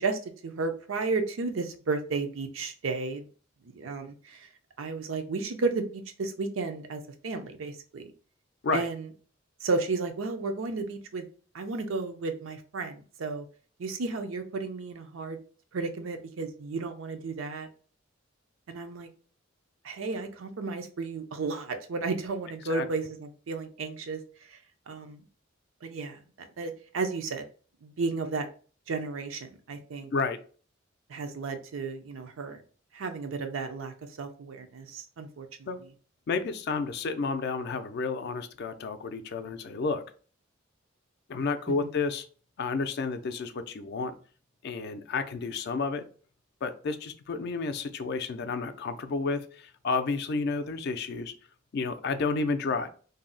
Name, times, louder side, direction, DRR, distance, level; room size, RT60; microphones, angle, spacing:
voice 1, 0.0-3.3 3.7-4.5 4.8-8.1 8.7-9.1 9.6-11.3 11.5-13.4 13.8-15.4 15.7-17.7 18.7-19.1 19.8-24.2 24.5-24.6 24.9-25.2 25.8-27.4 27.8-28.5 28.9-30.1 31.1-32.6 32.9-35.7 41.7-41.9, right 4 dB, 85° right, 7 dB, 0.5 m, -33 dB
voice 2, 36.3-40.0 41.3-42.3 42.6-44.1 44.6-46.0 46.6-51.3 51.7-52.9, left 4 dB, 55° left, 9 dB, 0.4 m, -31 dB
2.6 x 2.0 x 3.8 m, 0.40 s
head